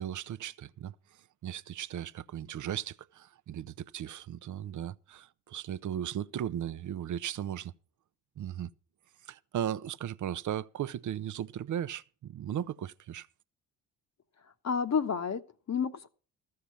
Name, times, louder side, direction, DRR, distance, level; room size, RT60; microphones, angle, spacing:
voice 1, 0.0-7.7 8.4-8.7 9.3-13.3, right 10 dB, 40° right, 0.7 m, -37 dB
voice 2, 14.6-16.1, left 6 dB, 35° left, 1.1 m, -30 dB
14.0 x 6.8 x 7.3 m
hypercardioid pair, 55°, 45 cm